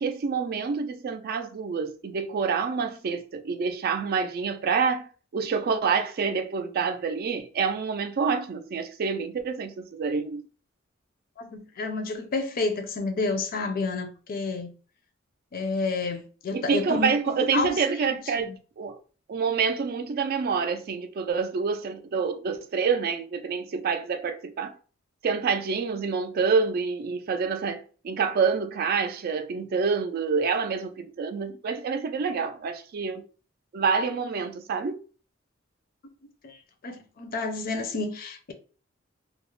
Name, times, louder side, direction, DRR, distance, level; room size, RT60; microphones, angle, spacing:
voice 1, 0.0-10.5 16.5-19.0 19.3-24.7 25.2-33.2 33.7-35.0, right 5 dB, 50° right, 0.3 m, -27 dB
voice 2, 11.4-14.7 15.5-17.8 18.5-18.6 36.4-38.5, left 3 dB, 45° left, 0.5 m, -30 dB
2.3 x 2.0 x 3.0 m
head